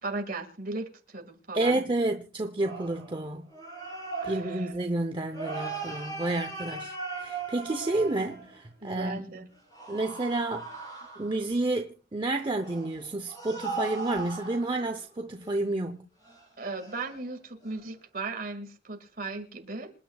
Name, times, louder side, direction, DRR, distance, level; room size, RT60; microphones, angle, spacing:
voice 1, 0.0-1.8 4.2-4.7 8.8-9.4 16.6-19.9, right 3 dB, 50° right, 2.0 m, -37 dB
voice 2, 1.5-3.4 4.2-9.2 9.9-10.7 11.2-16.0, right 2 dB, 25° right, 0.7 m, -30 dB
sound 1, 2.6-8.7 9.7-11.5 12.6-15.0 15.4-15.5 16.2-16.5 16.8-17.2 17.6-17.8, right 4 dB, 20° left, 6.9 m, -38 dB
27.0 x 9.4 x 2.3 m
head